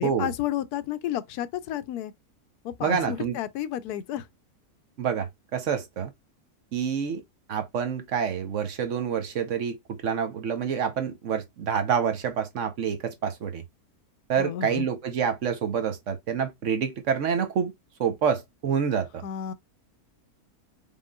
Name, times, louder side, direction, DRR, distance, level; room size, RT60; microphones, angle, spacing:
voice 1, 0.0-2.1 2.6-4.3 14.4-14.9 19.2-19.5, left 11 dB, 85° left, 1.1 m, -31 dB
voice 2, 2.8-3.4 5.0-6.1 6.7-7.2 7.5-9.8 10.0-13.6 14.3-17.7 18.0-19.2, right 7 dB, 60° right, 1.0 m, -27 dB
5.2 x 3.6 x 2.2 m
omnidirectional pair, 1.6 m